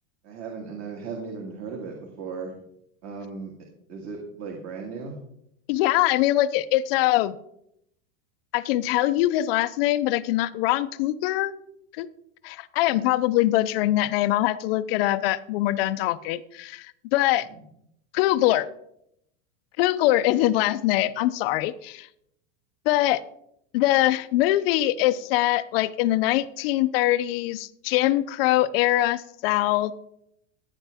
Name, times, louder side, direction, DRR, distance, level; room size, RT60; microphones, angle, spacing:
voice 1, 0.2-2.5 3.0-3.5 3.9-5.2 17.5-17.6, right 5 dB, 35° right, 1 dB, 2.0 m, -36 dB
voice 2, 5.7-7.4 8.5-11.5 12.0-12.1 12.4-17.5 18.1-18.7 19.8-22.1 22.9-23.2 23.7-29.9, left 15 dB, 45° left, 14 dB, 0.5 m, -23 dB
15.0 x 9.2 x 3.5 m, 0.75 s
supercardioid pair, 160°, 42 cm